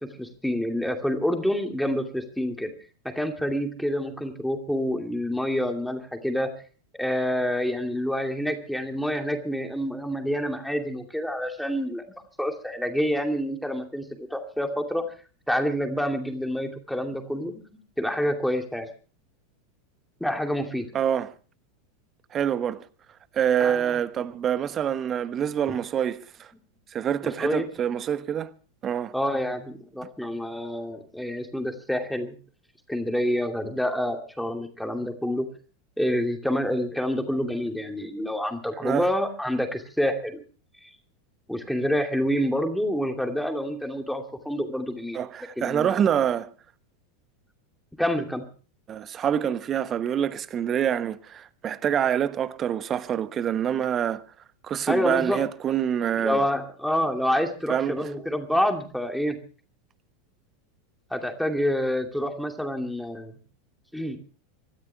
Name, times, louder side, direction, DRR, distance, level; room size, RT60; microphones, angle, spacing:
voice 1, 0.2-2.7 3.1-6.5 7.0-12.0 12.4-15.0 15.5-17.6 18.0-18.9 20.2-20.9 23.6-24.0 27.2-27.7 29.1-32.3 32.9-35.5 36.0-40.4 41.5-45.2 45.6-46.0 48.0-48.4 54.9-55.4 56.2-59.4 61.1-63.3 63.9-64.2, equal, ahead, 2.6 m, -27 dB
voice 2, 20.9-21.3 22.3-22.8 23.3-26.5 26.9-28.5 28.8-29.1 38.8-39.1 45.1-46.5 48.9-54.2 54.6-56.4 57.7-58.1, right 9 dB, 30° right, 1.1 m, -26 dB
25.5 x 13.5 x 3.4 m
figure-of-eight pair, 85°, 0 cm